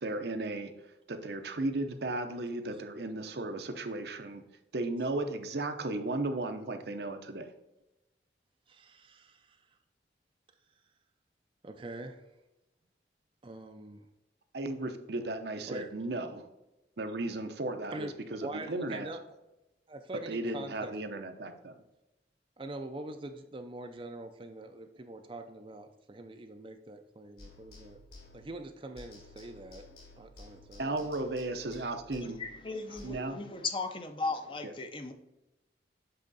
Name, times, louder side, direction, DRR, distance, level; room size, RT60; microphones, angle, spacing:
voice 1, 0.0-0.7 1.1-4.4 4.7-7.5 14.5-16.4 17.0-19.1 20.3-21.7 30.8-32.4 33.0-33.4 34.6-34.7, right 2 dB, 65° right, 7 dB, 0.7 m, -35 dB
voice 2, 8.7-9.6 11.6-12.2 13.4-14.1 15.7-15.9 17.9-19.2 19.9-20.9 22.6-28.0 28.3-29.8 30.2-31.1 32.9-33.0, right 2 dB, 30° right, 6 dB, 0.4 m, -44 dB
sound 1, 27.4-28.7 28.9-33.1, left 2 dB, 60° left, 1.8 m, -53 dB
voice 3, 32.4-35.1, left 3 dB, 30° left, 7 dB, 0.5 m, -36 dB
7.7 x 3.6 x 4.0 m, 0.97 s
head